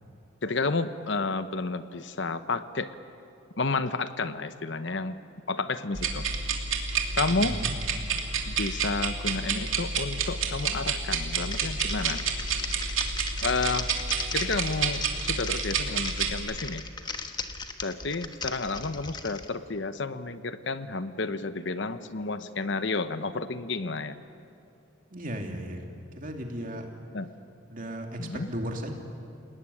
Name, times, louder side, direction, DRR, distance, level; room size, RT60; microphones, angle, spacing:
voice 1, 0.4-2.9 3.6-5.2 5.5-6.3 7.2-7.6 8.5-12.2 13.4-13.9 14.3-16.8 17.8-24.2 27.1-27.3 28.2-28.5, left 3 dB, 60° left, 11 dB, 0.9 m, -31 dB
sound 1, 5.9-16.3, right 5 dB, 80° right, 3.0 m, -29 dB
voice 2, 7.4-7.7 25.1-25.8 26.2-26.9 27.7-28.9, equal, 40° right, 2 dB, 2.8 m, -35 dB
Typing, 11.3-19.5, left 4 dB, 20° left, 1.2 m, -38 dB
28.5 x 19.0 x 9.9 m, 2.6 s
head